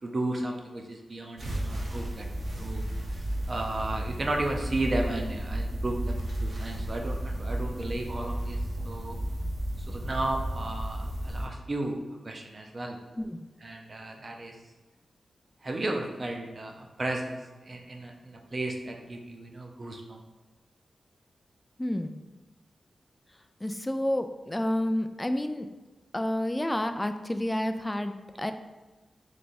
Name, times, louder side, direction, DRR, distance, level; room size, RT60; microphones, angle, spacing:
voice 1, 0.0-2.3 2.6-2.8 3.1-9.2 9.9-12.0 12.2-13.0 13.6-14.5 15.6-20.2, right 2 dB, 40° right, 2 dB, 0.6 m, -34 dB
sound 1, 1.4-11.5, right 1 dB, 60° right, 1.0 m, -33 dB
voice 2, 21.8-22.2 23.6-25.7 26.1-28.5, left 1 dB, 15° left, 8 dB, 0.3 m, -30 dB
3.4 x 3.3 x 4.2 m, 1.2 s
wide cardioid pair, 100°, 0 cm